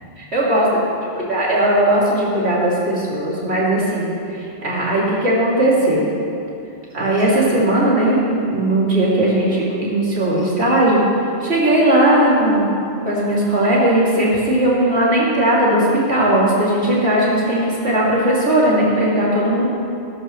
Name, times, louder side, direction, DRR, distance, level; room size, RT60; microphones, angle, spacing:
voice 1, 0.2-6.1 6.9-11.0 11.4-12.8 13.0-19.7, right 1 dB, 60° right, -7 dB, 3.3 m, -18 dB
18.0 x 13.0 x 3.3 m, 2.7 s
omnidirectional pair, 1.2 m